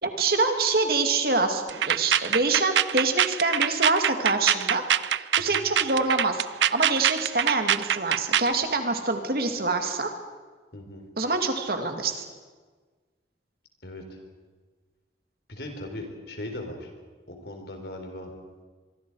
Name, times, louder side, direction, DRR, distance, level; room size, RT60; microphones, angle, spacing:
voice 1, 0.0-6.5 6.7-10.1 11.2-12.2, right 3 dB, 55° right, 5 dB, 2.2 m, -25 dB
sound 1, 1.7-8.5, right 10 dB, 80° right, 0.5 m, -24 dB
voice 2, 10.7-11.0 13.8-14.2 15.5-16.9 17.3-18.3, left 1 dB, 60° left, 4 dB, 4.1 m, -38 dB
25.0 x 23.5 x 4.8 m, 1.4 s
head